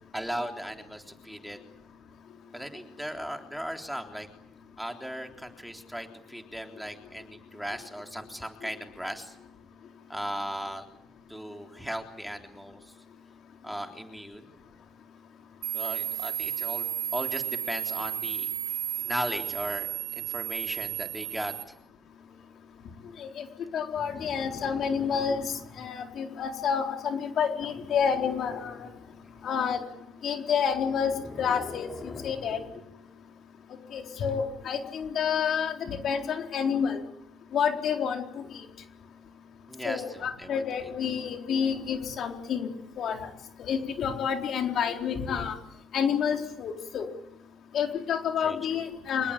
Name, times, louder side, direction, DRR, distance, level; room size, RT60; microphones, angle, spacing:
voice 1, 0.1-1.6 2.5-4.3 4.8-9.4 10.1-10.9 11.3-12.8 13.6-14.5 15.7-18.5 19.0-21.8 29.2-29.4 39.7-40.6 48.4-48.8, equal, ahead, 4 dB, 3.6 m, -37 dB
sound 1, 15.6-21.6, right 11 dB, 70° right, 1.9 m, -33 dB
voice 2, 23.7-28.9 29.4-29.8 30.2-31.1 31.4-32.6 33.9-37.0 37.5-38.6 39.8-42.7 43.0-43.3 43.6-45.6 45.9-47.1 47.7-49.3, left 7 dB, 55° left, 4 dB, 4.2 m, -29 dB
sound 2, 23.9-25.9 27.6-29.3 30.6-32.9 34.3-34.4, left 3 dB, 30° left, 3.4 m, -44 dB
26.5 x 21.5 x 8.8 m, 0.76 s
cardioid pair, 100°, 0 cm